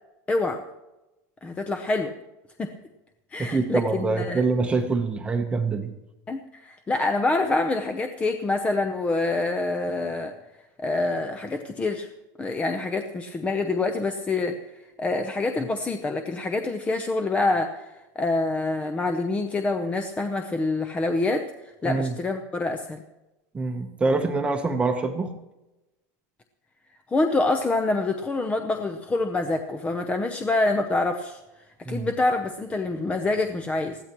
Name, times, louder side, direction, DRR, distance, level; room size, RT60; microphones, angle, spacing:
voice 1, 0.3-0.6 1.4-2.1 2.6-2.7 3.3-4.4 6.3-10.3 10.8-12.1 12.4-23.0 27.1-31.4 31.9-34.0, left 2 dB, 15° left, 6 dB, 0.7 m, -26 dB
voice 2, 3.4-5.9 21.8-22.1 23.5-25.3 31.8-32.1, right 3 dB, 10° right, 5 dB, 0.9 m, -25 dB
20.5 x 14.5 x 3.0 m, 1.0 s
supercardioid pair, 160°, 9 cm